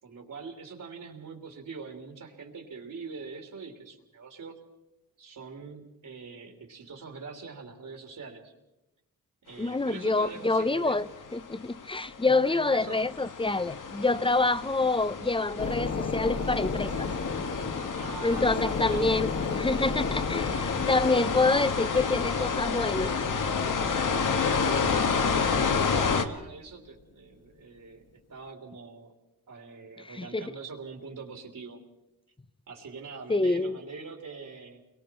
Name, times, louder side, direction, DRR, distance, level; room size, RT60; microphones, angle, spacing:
voice 1, 0.0-4.6 5.2-8.5 9.4-11.0 12.2-13.0 18.0-19.2 21.3-21.4 24.2-28.0 28.3-29.1 29.5-31.8 32.7-34.8, right 4 dB, 65° right, 3.3 m, -43 dB
voice 2, 9.6-17.1 18.2-23.2 30.0-30.5 33.3-33.8, left 3 dB, 15° left, 0.7 m, -27 dB
sound 1, 10.1-26.2, left 5 dB, 60° left, 1.7 m, -30 dB
sound 2, 15.6-25.6 26.0-26.1, left 4 dB, 45° left, 1.5 m, -34 dB
29.5 x 23.0 x 4.5 m
cardioid pair, 80°, 35 cm